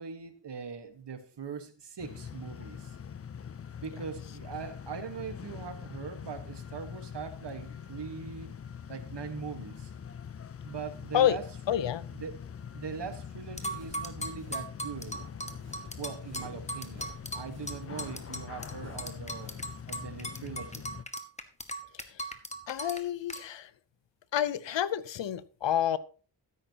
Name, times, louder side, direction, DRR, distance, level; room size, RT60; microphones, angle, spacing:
voice 1, 0.0-2.9 3.8-8.6 8.9-9.9 10.6-12.5 12.7-15.2 16.0-17.1 17.3-19.5 19.9-20.9, right 6 dB, 70° right, 1.5 m, -41 dB
sound 1, 2.0-21.0, left 7 dB, 35° left, 0.4 m, -43 dB
voice 2, 11.7-12.1 22.7-23.7 24.3-26.0, left 11 dB, 90° left, 0.7 m, -28 dB
sound 2, 13.6-18.7 19.0-23.0 23.3-23.4, right 1 dB, 15° left, 1.2 m, -38 dB
sound 3, 13.7-19.6, right 2 dB, 35° right, 3.4 m, -54 dB
13.0 x 10.0 x 2.9 m
wide cardioid pair, 80°, 43 cm